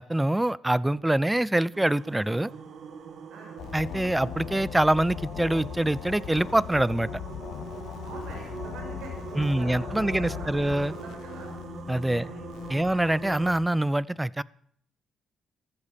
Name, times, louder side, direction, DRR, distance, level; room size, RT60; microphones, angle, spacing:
voice 1, 0.0-2.5 3.7-7.1 9.4-10.9 11.9-12.3 12.7-14.4, right 1 dB, 10° right, 22 dB, 0.4 m, -25 dB
sound 1, 1.7-13.5, right 6 dB, 60° right, 1.8 m, -42 dB
sound 2, 3.6-13.7, left 11 dB, 75° left, 0.7 m, -39 dB
voice 2, 8.0-11.6 12.2-12.4 12.9-13.0, right 3 dB, 80° right, 0 dB, 5.8 m, -45 dB
15.0 x 12.5 x 5.1 m, 0.66 s
cardioid pair, 90°, 0 cm